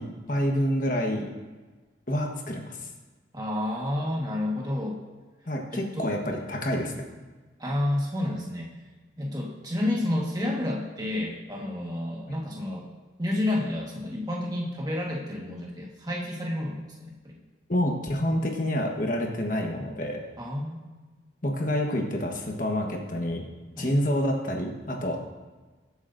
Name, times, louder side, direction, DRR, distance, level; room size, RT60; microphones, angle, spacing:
voice 1, 0.3-1.3 2.1-2.9 5.5-6.9 12.3-12.4 17.7-20.2 21.4-23.4 23.8-25.2, equal, 45° left, 1 dB, 1.3 m, -28 dB
voice 2, 3.3-5.0 5.7-6.1 7.6-8.7 9.2-12.8 13.2-17.4 20.4-20.8 23.8-23.9, left 1 dB, 20° right, -2 dB, 1.6 m, -30 dB
21.5 x 8.0 x 2.7 m, 1.3 s
head